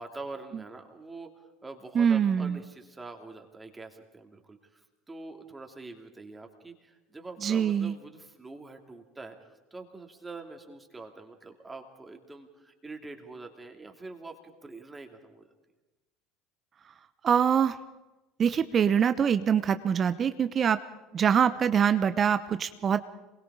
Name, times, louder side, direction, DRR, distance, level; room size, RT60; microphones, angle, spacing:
voice 1, 0.0-15.4, right 3 dB, 15° right, 4 dB, 2.9 m, -45 dB
voice 2, 1.9-2.6 7.4-7.9 17.2-17.8 18.4-20.8 21.1-23.0, right 8 dB, 40° right, 11 dB, 0.9 m, -24 dB
27.5 x 21.5 x 5.0 m, 1.1 s
hypercardioid pair, 70°, 0 cm